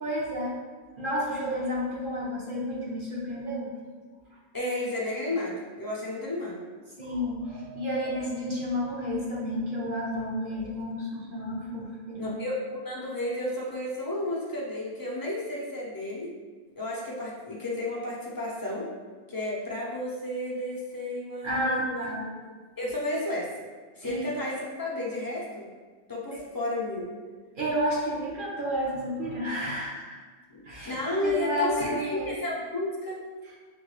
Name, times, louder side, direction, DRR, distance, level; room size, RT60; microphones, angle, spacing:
voice 1, 0.0-0.6 1.0-3.7 7.0-12.3 21.4-22.2 24.0-24.3 26.3-26.4 27.6-30.2 30.6-32.3, equal, 40° right, -5 dB, 0.9 m, -31 dB
voice 2, 4.5-6.6 12.2-16.3 16.8-18.9 19.3-22.5 22.8-23.5 24.0-25.7 26.1-27.1 30.5-33.2, left 1 dB, 25° left, -5 dB, 0.4 m, -32 dB
5.9 x 2.3 x 3.2 m, 1.4 s
omnidirectional pair, 1.6 m